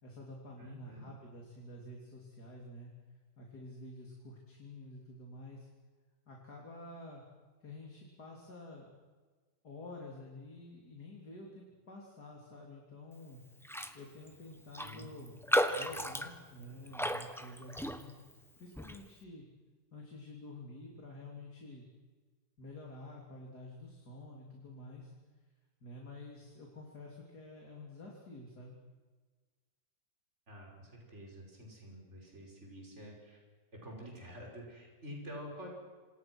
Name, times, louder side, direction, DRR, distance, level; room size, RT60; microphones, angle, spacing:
voice 1, 0.0-2.9 3.4-5.7 6.3-7.2 7.6-8.9 9.6-13.4 13.9-15.4 15.7-18.2 18.6-19.5 19.9-21.8 22.6-25.1 25.8-28.8, left 2 dB, 70° left, -1 dB, 4.0 m, -49 dB
voice 2, 0.6-1.1 14.8-15.1 30.5-33.4 33.8-35.7, equal, 40° right, -1 dB, 6.3 m, -48 dB
Raindrop, 13.6-14.0 14.3-14.4 14.7-18.3 18.8-19.0, equal, ahead, 1.1 m, -34 dB
27.5 x 27.0 x 6.3 m, 1.4 s
omnidirectional pair, 1.7 m